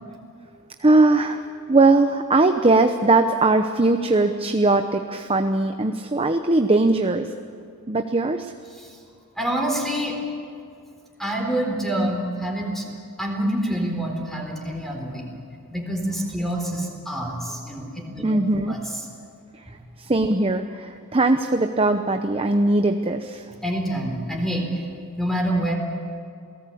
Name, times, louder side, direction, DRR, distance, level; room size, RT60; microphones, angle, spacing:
voice 1, 0.8-1.4 1.7-7.3 7.9-8.5 18.2-18.8 20.0-23.5, right 2 dB, 25° right, 7 dB, 0.8 m, -20 dB
voice 2, 9.4-10.2 11.2-12.8 13.2-15.3 15.7-18.4 18.7-18.8 23.6-24.7 25.2-25.7, right 1 dB, ahead, 1 dB, 4.1 m, -26 dB
28.5 x 18.0 x 8.5 m, 2.3 s
head